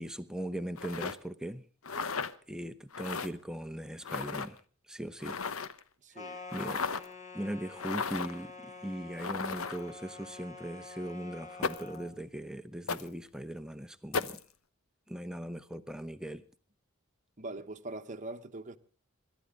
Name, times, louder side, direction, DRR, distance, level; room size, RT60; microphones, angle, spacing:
voice 1, 0.0-1.7 2.5-4.6 4.9-5.4 6.3-6.8 7.3-14.4 15.1-16.4, right 1 dB, 5° right, 0.8 m, -39 dB
sound 1, 0.8-1.1 1.8-2.3 2.9-3.3 4.0-4.5 5.2-5.8 6.5-7.1 7.8-8.4 9.2-9.9 11.6-12.0 12.9-13.1 14.1-14.4, left 5 dB, 75° left, 1.0 m, -35 dB
voice 2, 6.0-6.4 17.4-18.8, right 2 dB, 35° right, 1.1 m, -42 dB
sound 2, 6.2-12.1, left 4 dB, 35° left, 2.0 m, -47 dB
26.5 x 12.5 x 3.7 m
head